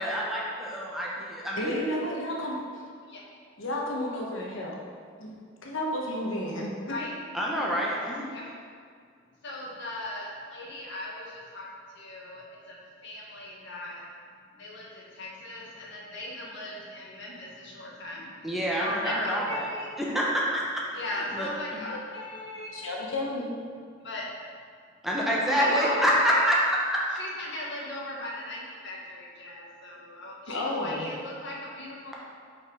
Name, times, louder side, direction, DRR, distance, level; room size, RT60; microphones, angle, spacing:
voice 1, 0.0-1.8 7.3-8.2 18.4-19.7 20.0-20.6 21.1-21.5 25.0-26.6, equal, ahead, -5 dB, 1.0 m, -27 dB
voice 2, 1.6-2.6 3.6-4.8 5.2-5.3 5.6-6.7 22.7-23.5 30.5-31.1, left 1 dB, 85° left, -2 dB, 1.0 m, -31 dB
voice 3, 9.4-11.7 11.9-12.8 13.0-14.0 14.6-18.3 18.8-19.9 20.9-22.8 24.0-24.3 25.5-26.5 27.2-32.1, left 1 dB, 65° left, -4 dB, 1.5 m, -37 dB
5.4 x 5.3 x 4.8 m, 2.1 s
head